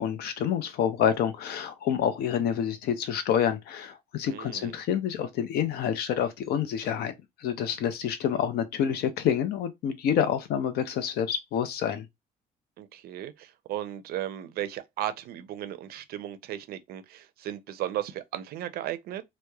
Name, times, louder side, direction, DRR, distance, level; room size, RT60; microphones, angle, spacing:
voice 1, 0.0-7.1 7.4-12.1, left 9 dB, 70° left, 0.5 m, -28 dB
voice 2, 4.3-4.8 12.8-19.2, right 12 dB, 65° right, 0.5 m, -35 dB
2.9 x 2.1 x 2.3 m
cardioid pair, 110°, 17 cm